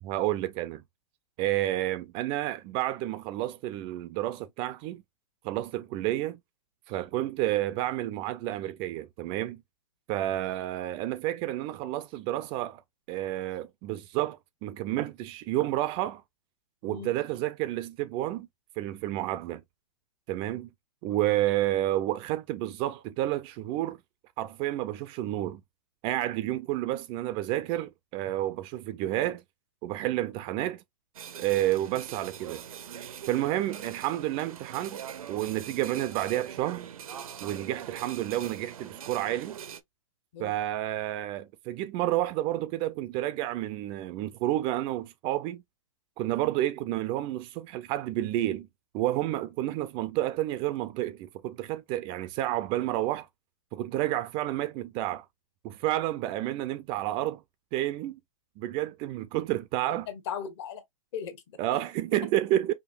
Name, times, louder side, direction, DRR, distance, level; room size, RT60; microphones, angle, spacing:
voice 1, 0.0-0.8 1.4-5.0 5.4-6.4 6.9-9.6 10.1-12.8 13.1-16.2 16.8-18.5 18.8-19.6 20.3-20.7 21.0-24.0 24.4-25.6 26.0-29.4 29.8-30.8 31.4-32.6 33.3-35.0 35.3-36.9 37.4-39.6 40.4-45.6 46.2-48.7 48.9-53.3 53.7-55.2 55.6-57.4 57.7-58.2 58.6-60.1 61.6-62.7, right 14 dB, 30° right, 0.4 m, -30 dB
sound 1, 31.1-39.8, right 9 dB, 80° right, 0.7 m, -42 dB
voice 2, 59.9-60.8 61.1-61.8, left 8 dB, 55° left, 1.2 m, -38 dB
5.0 x 2.7 x 2.4 m
hypercardioid pair, 125°, 18 cm